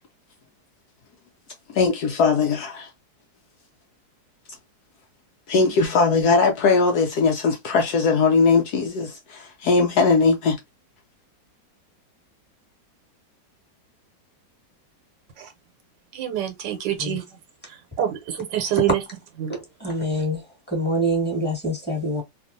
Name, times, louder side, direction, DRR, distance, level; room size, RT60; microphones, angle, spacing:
voice 1, 1.7-2.9 5.5-10.6, left 4 dB, 70° left, 1.0 m, -20 dB
voice 2, 16.1-17.2 18.0-19.0 19.4-19.5, right 11 dB, 75° right, 1.4 m, -26 dB
voice 3, 19.5-22.2, right 1 dB, 5° left, 1.4 m, -26 dB
2.9 x 2.5 x 2.5 m
omnidirectional pair, 2.0 m